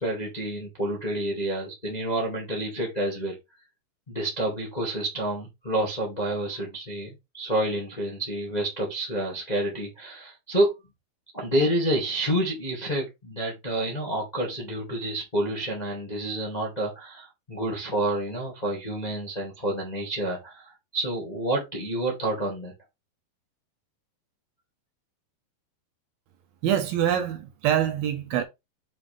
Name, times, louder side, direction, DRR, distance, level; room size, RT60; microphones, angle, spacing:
voice 1, 0.0-3.3 4.1-10.7 11.3-22.7, right 1 dB, 20° left, 1.0 m, -29 dB
voice 2, 26.6-28.4, right 10 dB, 70° right, 2.7 m, -25 dB
7.3 x 5.0 x 3.4 m
omnidirectional pair, 4.8 m